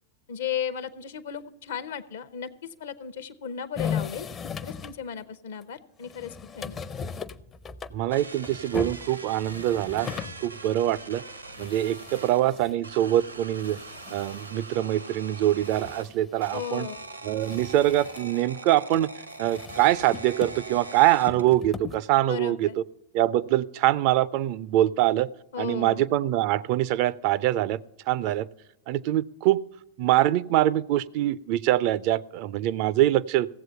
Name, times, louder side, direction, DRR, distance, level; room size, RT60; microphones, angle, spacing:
voice 1, 0.3-4.3 4.6-6.8 16.5-17.0 22.3-22.8 25.5-26.0, left 8 dB, 60° left, 12 dB, 0.7 m, -35 dB
sound 1, 3.7-5.0 5.6-5.7 6.0-10.5 10.9-11.0 11.2-11.3 11.5-12.8 13.6-14.6 15.4-16.6 16.9-17.0 17.4-18.3 18.9-19.1 19.4-20.8 21.3-22.0, left 6 dB, 25° left, 0.5 m, -38 dB
voice 2, 7.9-10.1 10.4-11.2 11.6-13.8 14.1-16.9 17.2-19.1 19.4-22.8 23.1-25.3 25.6-27.8 28.1-28.5 28.9-29.6 30.0-33.5, right 14 dB, 45° right, 19 dB, 0.4 m, -24 dB
sound 2, 8.1-12.4 12.8-16.0 16.4-21.6, right 3 dB, 85° right, 0.9 m, -42 dB
15.5 x 7.8 x 5.6 m, 0.86 s
figure-of-eight pair, 90°, 0 cm